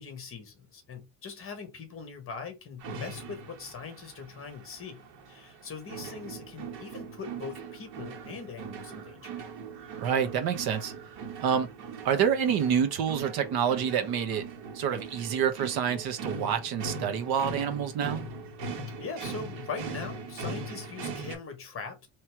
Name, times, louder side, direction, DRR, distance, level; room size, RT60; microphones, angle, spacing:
voice 1, 0.0-9.4 19.0-22.1, left 5 dB, 30° left, 1.4 m, -41 dB
sound 1, 2.8-21.3, right 4 dB, 80° right, 1.8 m, -40 dB
voice 2, 10.0-10.9 11.4-11.7 12.0-14.4 14.7-18.2, right 8 dB, 60° right, 1.0 m, -27 dB
3.1 x 2.9 x 4.6 m
cardioid pair, 155°, 43 cm